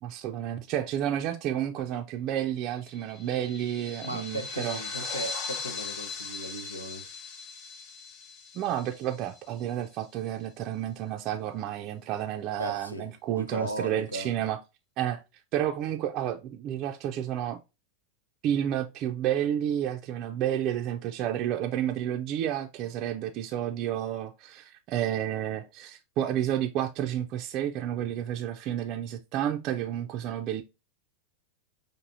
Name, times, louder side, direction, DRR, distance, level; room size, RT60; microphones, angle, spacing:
voice 1, 0.0-4.8 8.5-14.6 15.0-15.2 15.5-17.6 18.4-30.6, right 11 dB, 40° right, 0.4 m, -31 dB
sound 1, 2.9-9.7, left 4 dB, 40° left, 0.6 m, -39 dB
voice 2, 4.0-7.1 12.6-14.3, right 1 dB, 85° left, 0.7 m, -37 dB
6.0 x 2.6 x 2.5 m
figure-of-eight pair, 90°, 0 cm